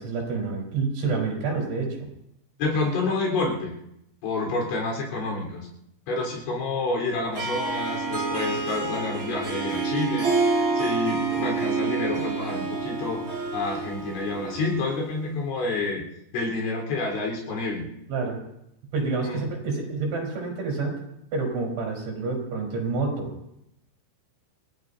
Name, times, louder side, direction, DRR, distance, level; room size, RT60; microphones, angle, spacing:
voice 1, 0.0-2.0 18.1-18.4 18.9-21.0 21.3-23.3, right 4 dB, 70° right, -1 dB, 6.6 m, -28 dB
voice 2, 2.6-3.7 4.2-5.7 6.1-13.2 13.5-16.0 16.3-17.8 19.2-19.4, left 3 dB, 75° left, -1 dB, 6.4 m, -29 dB
Harp, 7.3-15.0, right 3 dB, 25° right, 6.5 m, -28 dB
29.0 x 17.5 x 2.8 m, 0.80 s
omnidirectional pair, 5.5 m